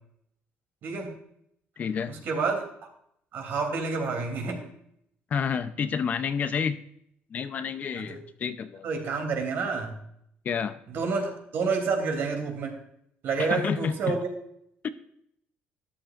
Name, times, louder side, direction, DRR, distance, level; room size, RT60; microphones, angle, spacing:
voice 1, 0.8-1.1 2.1-2.6 3.3-4.6 8.0-8.2 8.8-10.0 10.9-12.7 13.2-14.3, right 4 dB, 55° right, 4 dB, 3.2 m, -29 dB
voice 2, 1.8-2.1 5.3-6.8 7.3-8.9 10.4-10.8 13.4-14.2, left 6 dB, 40° left, 10 dB, 0.7 m, -29 dB
13.5 x 12.0 x 2.6 m, 0.72 s
cardioid pair, 150°, 4 cm